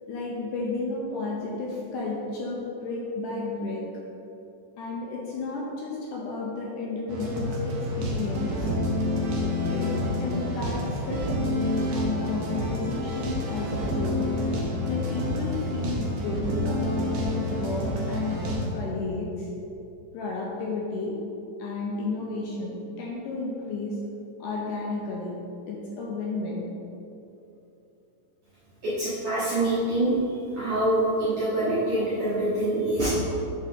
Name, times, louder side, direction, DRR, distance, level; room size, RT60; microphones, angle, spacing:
voice 1, 0.1-3.9 4.8-8.7 9.7-14.3 14.9-19.5 20.1-21.2 21.6-24.0 24.4-25.4 25.7-26.7, left 3 dB, 80° left, -3 dB, 2.0 m, -32 dB
sound 1, 7.1-18.6, left 1 dB, 80° right, 1.4 m, -28 dB
voice 2, 28.8-30.2 30.5-33.1, right 1 dB, 60° right, -11 dB, 1.5 m, -25 dB
6.5 x 4.9 x 3.7 m, 2.9 s
omnidirectional pair, 4.1 m